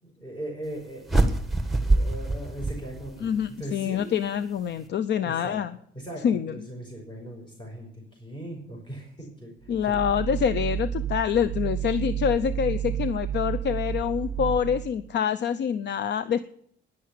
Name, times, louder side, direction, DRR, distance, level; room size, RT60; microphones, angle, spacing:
voice 1, 0.0-1.4 1.8-4.2 5.2-5.6 5.9-9.5 9.8-9.9, right 1 dB, 25° left, 0 dB, 5.5 m, -39 dB
sound 1, 1.1-3.5, right 2 dB, ahead, 1.6 m, -24 dB
voice 2, 3.2-5.8 6.2-6.6 9.7-16.4, left 8 dB, 60° left, 15 dB, 0.6 m, -26 dB
sound 2, 9.6-15.1, right 10 dB, 45° right, 0.8 m, -31 dB
10.5 x 10.5 x 8.5 m, 0.67 s
cardioid pair, 90°, 20 cm